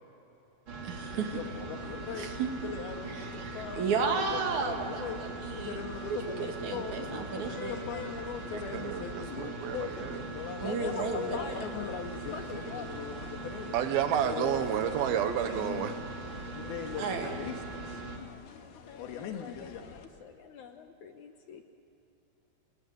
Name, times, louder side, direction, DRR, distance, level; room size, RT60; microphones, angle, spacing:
sound 1, 0.7-18.2, right 3 dB, 35° right, 3.1 m, -41 dB
voice 1, 0.8-1.4 2.1-2.5 3.0-5.8 6.1-7.8 10.6-11.4 16.9-17.4, right 5 dB, 55° right, 3 dB, 3.1 m, -33 dB
sound 2, 1.1-20.1, left 7 dB, 90° left, 3.4 m, -41 dB
voice 2, 8.5-10.3 13.7-16.0, right 9 dB, 80° right, 9 dB, 3.0 m, -31 dB
voice 3, 10.6-13.5 18.9-21.6, left 6 dB, 70° left, 6 dB, 2.0 m, -43 dB
26.5 x 20.0 x 9.4 m, 3.0 s
omnidirectional pair, 4.4 m